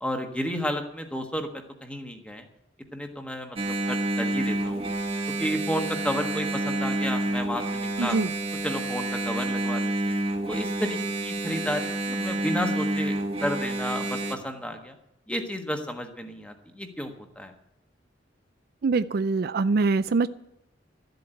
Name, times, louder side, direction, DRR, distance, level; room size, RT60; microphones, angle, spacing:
voice 1, 0.0-2.5 2.9-4.9 5.4-8.2 8.6-10.1 10.5-15.0 15.3-17.5, equal, 5° left, 4 dB, 1.4 m, -32 dB
Engine, 3.6-14.4, right 2 dB, 30° right, 1.4 m, -29 dB
voice 2, 8.0-8.3 18.8-20.3, right 4 dB, 55° right, 13 dB, 0.4 m, -23 dB
13.0 x 8.0 x 9.0 m, 0.81 s
head